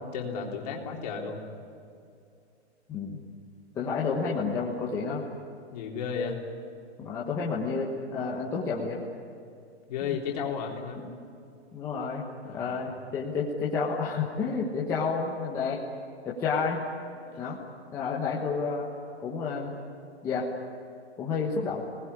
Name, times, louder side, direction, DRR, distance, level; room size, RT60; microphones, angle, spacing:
voice 1, 0.1-1.4 5.7-6.4 9.9-11.0 12.4-12.8 17.2-17.5, left 6 dB, 35° left, 0 dB, 3.7 m, -34 dB
voice 2, 2.9-3.2 3.7-5.2 7.0-9.0 10.0-10.2 11.0-11.1 11.7-15.8 16.2-16.8 17.4-17.6 17.9-18.9 19.2-19.7 20.2-20.5 21.2-21.8, left 5 dB, 10° left, -4 dB, 1.3 m, -30 dB
26.5 x 19.5 x 9.8 m, 2.5 s
hypercardioid pair, 175°, 33 cm